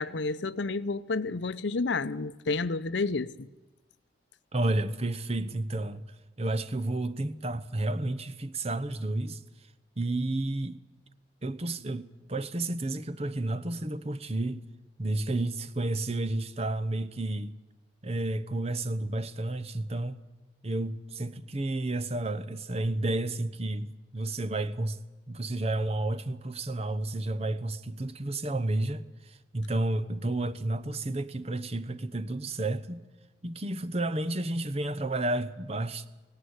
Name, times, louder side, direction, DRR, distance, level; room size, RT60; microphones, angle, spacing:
voice 1, 0.0-3.5, left 3 dB, 70° left, 0.7 m, -30 dB
voice 2, 4.5-6.1 6.4-9.4 10.0-10.8 11.4-14.7 15.0-17.5 18.0-20.2 20.6-25.0 25.3-33.0 33.4-36.1, right 2 dB, 30° right, 0.9 m, -31 dB
18.0 x 17.5 x 9.6 m
head